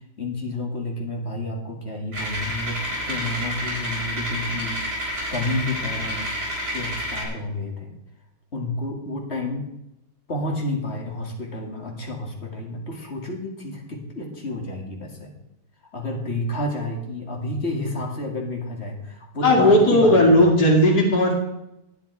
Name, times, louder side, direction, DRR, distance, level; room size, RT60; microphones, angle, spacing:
voice 1, 0.2-6.3 6.7-7.9 8.5-9.6 10.3-15.3 15.9-20.4, left 2 dB, 40° left, 1 dB, 2.4 m, -30 dB
sound 1, 2.1-7.3, equal, 65° right, 5.2 m, -29 dB
voice 2, 19.4-21.3, left 1 dB, 75° left, -5 dB, 2.9 m, -16 dB
11.0 x 9.7 x 4.7 m, 0.86 s
omnidirectional pair, 1.7 m